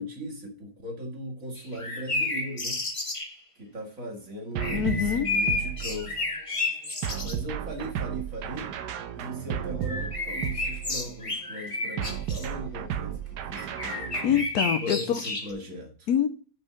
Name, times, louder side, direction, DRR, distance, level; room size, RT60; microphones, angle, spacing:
voice 1, 0.0-2.8 3.6-6.3 7.2-8.7 9.2-14.3 14.8-16.1, equal, 55° right, 2.2 m, -38 dB
sound 1, 1.6-3.3 4.6-7.4 9.8-12.5 13.5-15.5, left 3 dB, 20° left, 1.1 m, -31 dB
sound 2, 4.6-6.3 7.0-11.2 12.0-14.5, right 9 dB, 80° right, 1.3 m, -34 dB
voice 2, 4.7-5.3 14.2-15.2 16.1-16.5, left 9 dB, 70° left, 1.1 m, -25 dB
6.2 x 5.4 x 6.6 m
omnidirectional pair, 1.7 m